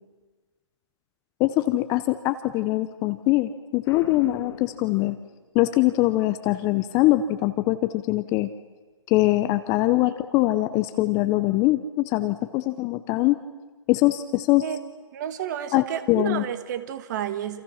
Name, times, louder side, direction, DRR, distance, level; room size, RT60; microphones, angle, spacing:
voice 1, 1.4-5.2 5.5-8.5 9.1-13.4 13.9-14.7 15.7-16.4, left 17 dB, 20° left, 11 dB, 0.7 m, -22 dB
Boom, 3.8-5.7, left 7 dB, 55° left, 2.0 m, -42 dB
voice 2, 15.1-17.6, right 10 dB, 35° right, 12 dB, 1.5 m, -31 dB
28.0 x 27.0 x 5.7 m, 1.3 s
figure-of-eight pair, 140°, 16 cm